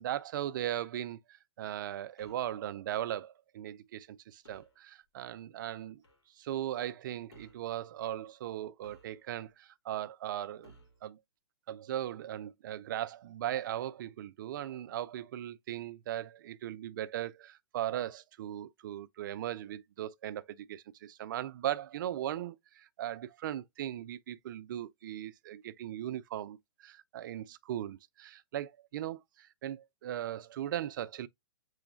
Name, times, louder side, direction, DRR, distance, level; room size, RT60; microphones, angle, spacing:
voice 1, 0.0-6.0 6.4-10.7 11.0-11.2 11.7-31.3, right 12 dB, 50° right, 0.4 m, -38 dB
sound 1, 2.2-2.6 4.4-4.8 6.0-6.3 7.3-7.7 8.8-9.5 10.6-11.1, right 1 dB, 75° left, 1.6 m, -59 dB
6.9 x 3.1 x 2.4 m
hypercardioid pair, 140°, 14 cm